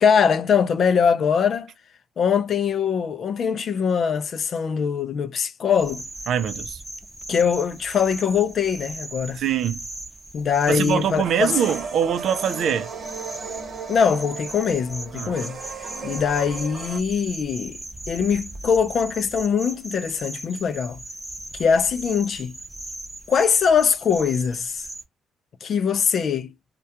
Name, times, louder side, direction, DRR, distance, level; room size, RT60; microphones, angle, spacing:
voice 1, 0.0-1.7 2.2-6.0 7.3-9.4 10.3-11.6 13.9-17.8 18.1-21.0 21.5-22.5 23.3-24.9 25.6-26.5, left 7 dB, 55° left, 0.4 m, -22 dB
sound 1, 5.8-25.0, right 1 dB, 10° right, 0.7 m, -38 dB
voice 2, 6.3-6.8 9.4-9.9 10.7-12.9 15.1-15.5, right 8 dB, 70° right, 0.5 m, -23 dB
sound 2, 11.2-17.0, right 5 dB, 50° right, 0.9 m, -36 dB
2.2 x 2.2 x 2.7 m
cardioid pair, 90°, 0 cm